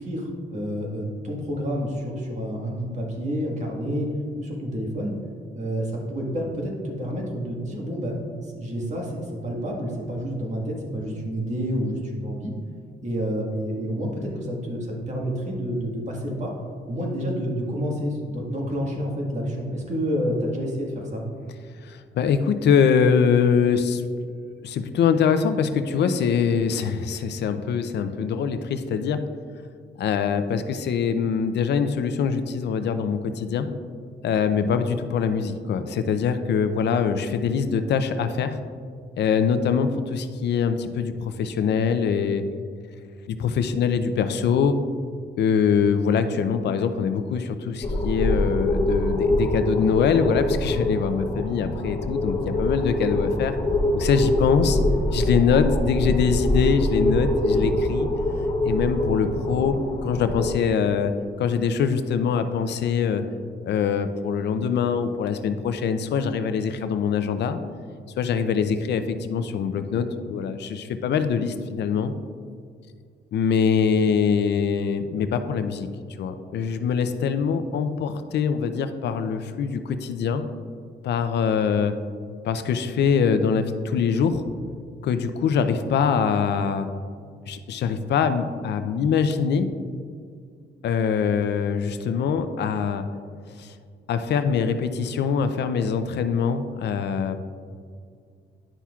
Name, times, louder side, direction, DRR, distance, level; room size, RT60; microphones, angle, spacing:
voice 1, 0.0-4.1 4.4-5.1 5.5-8.2 8.4-12.5 13.0-16.5 16.9-21.2, equal, 40° right, -1 dB, 1.6 m, -29 dB
voice 2, 21.8-24.0 24.6-29.2 30.0-33.7 34.2-38.6 39.2-42.4 43.3-44.8 45.4-53.5 53.9-54.8 55.1-58.1 58.6-59.7 60.0-61.1 61.4-63.2 63.6-67.6 68.2-72.1 73.3-75.9 76.2-80.4 81.0-81.9 82.4-84.4 85.0-86.9 87.5-89.7 90.8-93.1 93.6-93.7 94.1-97.4, left 6 dB, 70° left, 9 dB, 0.5 m, -23 dB
sound 1, 47.8-60.5, left 1 dB, 20° left, 1.3 m, -24 dB
10.0 x 5.7 x 2.4 m, 2.1 s
cardioid pair, 110°, 19 cm